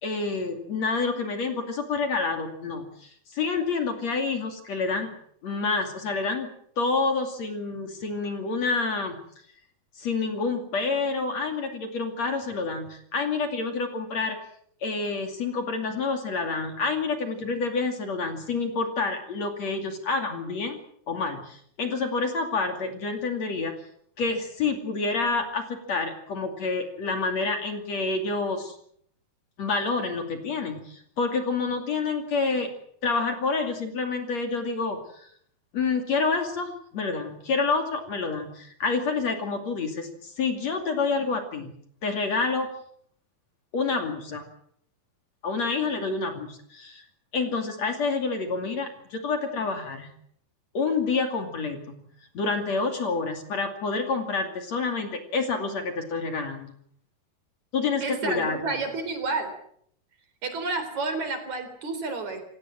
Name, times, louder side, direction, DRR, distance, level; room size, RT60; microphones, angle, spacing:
voice 1, 0.0-5.1 5.4-6.5 6.8-9.2 10.0-14.4 14.8-20.8 21.1-23.7 24.2-28.8 29.6-32.7 33.0-35.3 35.7-41.7 42.0-42.7 43.7-44.4 45.4-47.0 47.3-50.1 50.7-52.0 52.4-56.7 57.7-58.8, left 4 dB, 50° left, 5 dB, 3.5 m, -28 dB
voice 2, 58.0-59.5 60.4-62.4, right 3 dB, 50° right, 8 dB, 5.0 m, -30 dB
28.5 x 17.5 x 7.5 m, 0.67 s
omnidirectional pair, 4.3 m